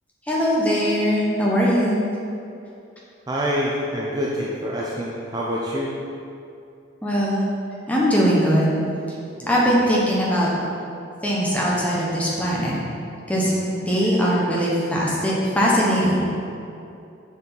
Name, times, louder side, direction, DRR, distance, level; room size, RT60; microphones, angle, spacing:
voice 1, 0.3-2.0 7.0-7.5 7.9-8.8 9.5-10.5 11.2-12.8 13.3-16.3, equal, 5° left, -5 dB, 1.2 m, -20 dB
voice 2, 3.3-5.9 9.4-9.5 13.4-13.6, equal, 20° right, -5 dB, 0.6 m, -26 dB
7.0 x 6.4 x 4.1 m, 2.6 s
head